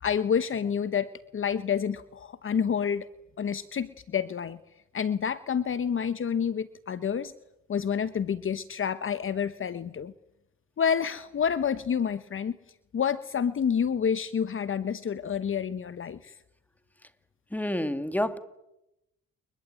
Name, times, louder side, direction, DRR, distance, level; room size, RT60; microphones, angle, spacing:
voice 1, 0.0-3.1 3.4-4.6 4.9-7.3 7.7-10.1 10.8-12.6 12.9-16.3, left 7 dB, 45° left, 13 dB, 1.1 m, -28 dB
voice 2, 17.5-18.4, left 1 dB, 5° left, 10 dB, 2.2 m, -28 dB
29.5 x 21.0 x 9.1 m, 0.89 s
cardioid pair, 90°, 30 cm